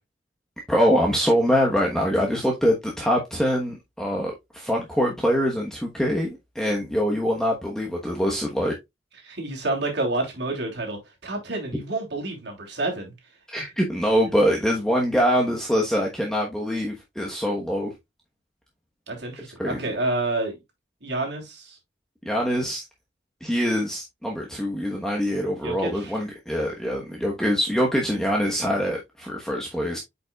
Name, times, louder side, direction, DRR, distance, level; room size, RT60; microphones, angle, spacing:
voice 1, 0.7-8.7 13.5-17.9 19.6-19.8 22.2-22.8 23.4-30.0, equal, 5° left, 1.0 m, -24 dB
voice 2, 9.2-13.1 13.5-13.6 19.1-20.6 21.0-21.8 25.6-26.1, right 2 dB, 60° right, 3.0 m, -29 dB
8.5 x 5.4 x 2.3 m
head